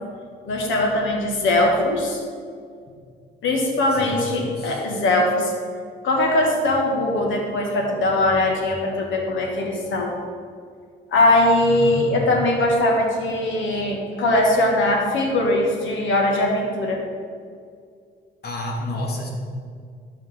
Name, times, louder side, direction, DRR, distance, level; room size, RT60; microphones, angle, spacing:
voice 1, 0.4-2.2 3.4-5.5 6.0-10.1 11.1-17.0, left 1 dB, 80° left, 0 dB, 1.7 m, -21 dB
voice 2, 3.9-4.8 11.6-12.3 18.4-19.3, left 1 dB, 55° left, -1 dB, 1.9 m, -30 dB
12.5 x 4.9 x 3.6 m, 2.1 s
cardioid pair, 90°, 20 cm